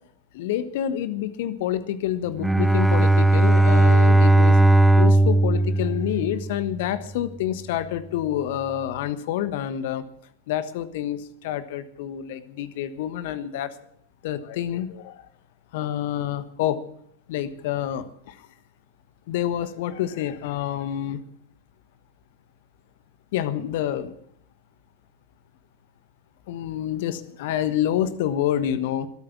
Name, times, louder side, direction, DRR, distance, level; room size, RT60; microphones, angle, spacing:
voice 1, 0.3-4.6 5.0-10.0 10.5-13.7 14.2-15.2 15.7-16.8 17.3-18.4 19.3-21.2 23.3-24.1 26.5-29.1, left 11 dB, 50° left, 14 dB, 1.3 m, -28 dB
Bowed string instrument, 2.4-6.8, right 1 dB, ahead, 0.5 m, -17 dB
23.5 x 8.9 x 6.1 m, 0.68 s
figure-of-eight pair, 90°, 0 cm